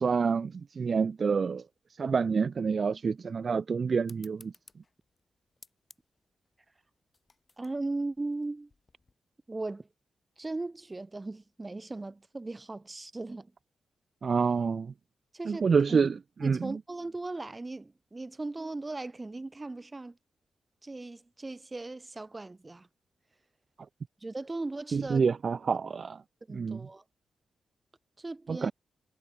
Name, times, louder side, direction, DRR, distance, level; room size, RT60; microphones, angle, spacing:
voice 1, 0.0-1.6 2.0-4.5 14.2-14.9 15.5-16.8 24.9-26.2 26.5-26.9 28.5-28.7, right 5 dB, 50° right, 0.3 m, -27 dB
sound 1, 4.0-9.1, left 3 dB, 30° left, 3.5 m, -59 dB
voice 2, 7.6-8.7 9.5-9.9 10.4-13.5 15.3-15.6 15.9-16.0 16.4-20.2 20.8-22.9 24.2-25.2 26.5-27.0 28.2-28.7, right 2 dB, 20° right, 1.0 m, -37 dB
wide cardioid pair, 110°, 0 cm